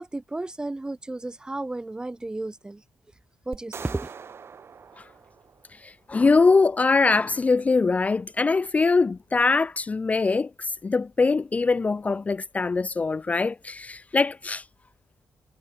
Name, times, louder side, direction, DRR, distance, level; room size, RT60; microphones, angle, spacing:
voice 1, 0.0-2.8 3.5-4.1, right 2 dB, 15° right, 0.6 m, -33 dB
sound 1, 3.5-5.9, right 6 dB, 45° right, 7.6 m, -43 dB
voice 2, 5.8-14.6, left 4 dB, 25° left, 0.4 m, -22 dB
cardioid pair, 115°, 6 cm